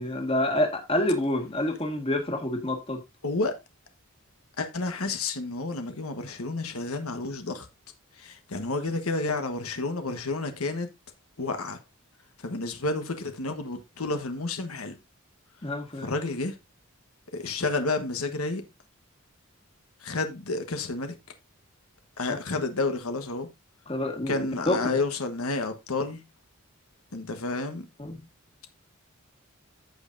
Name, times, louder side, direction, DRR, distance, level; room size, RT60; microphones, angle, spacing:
voice 1, 0.0-3.0 15.6-16.1 23.9-24.9 28.0-28.2, left 1 dB, 25° left, 1.7 m, -28 dB
voice 2, 3.2-3.6 4.6-7.7 8.2-10.9 11.4-11.8 12.4-15.0 16.0-16.6 17.3-18.6 20.0-21.1 22.2-23.5 24.3-26.2 27.1-27.8, left 3 dB, 90° left, 1.3 m, -30 dB
14.5 x 5.3 x 2.6 m
head